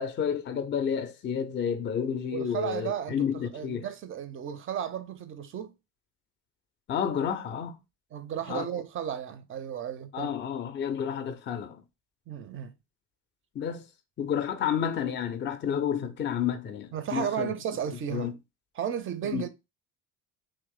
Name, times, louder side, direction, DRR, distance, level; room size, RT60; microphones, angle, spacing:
voice 1, 0.0-3.9 6.9-7.8 8.5-8.7 10.1-11.8 13.5-13.9 14.2-17.5 18.1-18.3 19.3-19.4, left 8 dB, 25° left, 0.5 m, -30 dB
voice 2, 2.3-5.7 8.1-10.3 12.3-12.7 16.9-18.3 18.8-19.5, right 9 dB, 30° right, 0.5 m, -34 dB
3.0 x 2.5 x 3.5 m
figure-of-eight pair, 50°, 46 cm